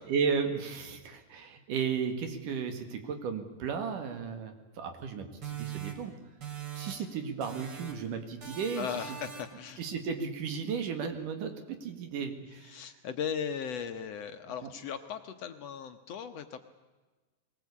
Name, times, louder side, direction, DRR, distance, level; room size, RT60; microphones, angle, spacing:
voice 1, 0.1-6.1 6.8-8.9 9.8-12.8, right 6 dB, 85° right, 7 dB, 3.5 m, -34 dB
Race Countdown, 5.4-7.1 7.4-8.1 8.4-9.7, right 9 dB, 45° right, 3.1 m, -42 dB
voice 2, 8.8-9.8 12.6-16.6, left 7 dB, 65° left, 8 dB, 1.8 m, -37 dB
21.5 x 19.0 x 8.5 m, 1.2 s
omnidirectional pair, 3.6 m